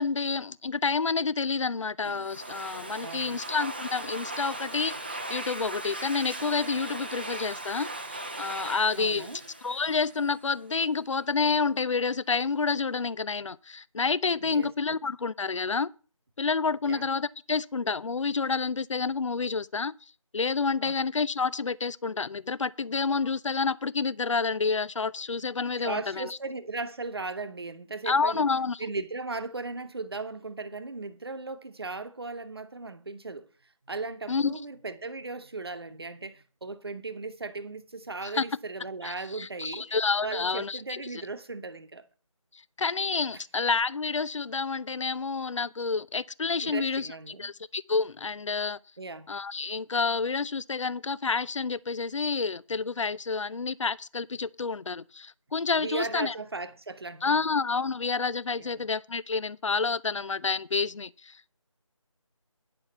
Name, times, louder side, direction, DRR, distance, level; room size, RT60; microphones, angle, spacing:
voice 1, 0.0-9.3 9.6-15.9 16.4-20.0 20.3-26.4 28.0-28.8 34.3-34.6 38.2-38.4 39.0-41.0 42.5-48.8 49.3-56.3 57.2-61.5, left 4 dB, 65° left, 0.5 m, -29 dB
Domestic sounds home sounds, 2.0-10.5, right 2 dB, 20° right, 0.6 m, -38 dB
voice 2, 3.0-3.4 8.9-9.4 14.4-14.7 16.9-17.1 20.8-21.0 25.8-28.4 28.8-33.5 33.9-39.9 40.2-42.0 43.3-43.4 46.6-47.5 49.0-49.3 55.8-57.4 58.6-58.9, right 3 dB, 45° right, 1.1 m, -37 dB
9.9 x 6.9 x 6.6 m
figure-of-eight pair, 165°, 17 cm